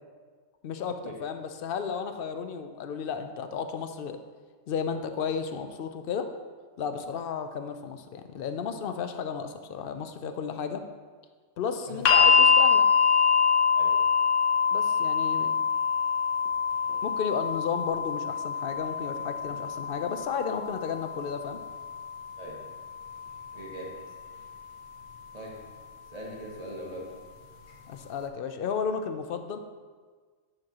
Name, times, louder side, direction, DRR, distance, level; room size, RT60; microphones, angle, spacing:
voice 1, 0.6-4.2 4.7-6.3 6.8-10.8 11.6-12.9 14.7-15.5 17.0-21.6 27.9-29.6, left 6 dB, 60° left, 7 dB, 0.6 m, -33 dB
sound 1, 12.0-24.1 25.2-25.3, left 6 dB, 80° left, 1.1 m, -25 dB
voice 2, 23.5-24.0 25.3-25.6 26.1-27.1, right 1 dB, 30° right, -2 dB, 1.4 m, -40 dB
9.0 x 6.0 x 2.9 m, 1.5 s
omnidirectional pair, 1.3 m